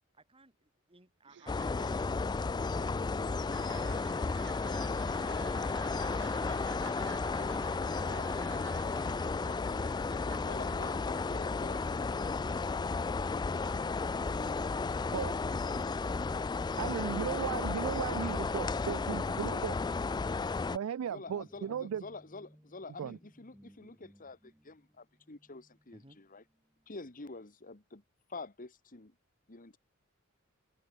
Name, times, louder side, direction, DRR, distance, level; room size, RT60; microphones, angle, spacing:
voice 1, 0.1-2.5 9.3-9.9 17.2-19.0 25.9-26.2, right 3 dB, 25° right, 4.4 m, -60 dB
sound 1, 1.2-12.9, right 6 dB, 60° right, 4.8 m, -52 dB
sound 2, 1.5-20.8, left 4 dB, 20° left, 0.3 m, -33 dB
voice 2, 10.2-11.8 21.1-26.4 26.9-28.0 28.3-29.1 29.5-29.8, left 3 dB, 40° left, 1.6 m, -47 dB
voice 3, 16.8-19.8 20.7-22.0 23.0-23.2, right 8 dB, 75° right, 0.3 m, -36 dB
Guitar, 17.1-27.0, equal, 5° right, 2.0 m, -65 dB
head